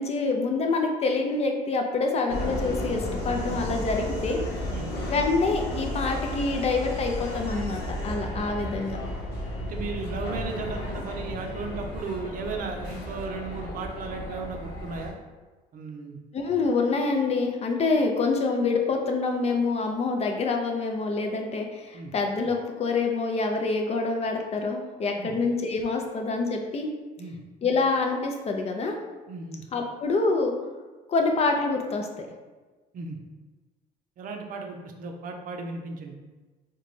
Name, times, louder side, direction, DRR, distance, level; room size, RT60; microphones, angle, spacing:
voice 1, 0.0-4.4 5.1-9.0 16.3-26.9 27.6-29.0 29.7-30.5 31.1-32.3, left 3 dB, 40° left, 3 dB, 0.5 m, -26 dB
Subway metro underground, 2.3-15.1, left 1 dB, 80° left, 0.8 m, -33 dB
voice 2, 9.6-15.1 15.7-16.2 21.9-22.1 25.2-25.4 27.2-27.4 29.3-29.6 32.9-33.2 34.2-36.1, right 4 dB, 55° right, 3 dB, 0.5 m, -35 dB
3.8 x 2.2 x 3.1 m, 1.3 s
cardioid pair, 110°, 17 cm